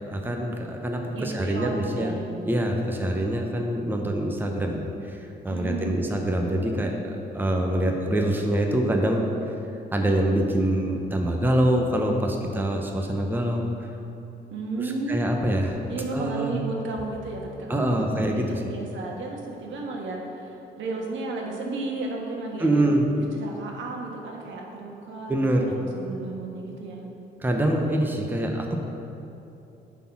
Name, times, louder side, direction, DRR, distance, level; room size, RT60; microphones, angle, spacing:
voice 1, 0.1-2.1 2.5-5.2 5.4-9.3 9.9-13.9 14.8-15.8 16.1-16.6 17.7-18.7 22.6-23.1 25.3-25.7 27.4-28.8, right 1 dB, 10° right, 2 dB, 0.8 m, -25 dB
voice 2, 1.1-2.2 5.5-6.0 14.5-15.2 15.9-22.9 23.3-25.4 25.7-27.1, right 3 dB, 75° right, -1 dB, 1.3 m, -33 dB
9.1 x 4.2 x 5.8 m, 2.9 s
cardioid pair, 90°, 20 cm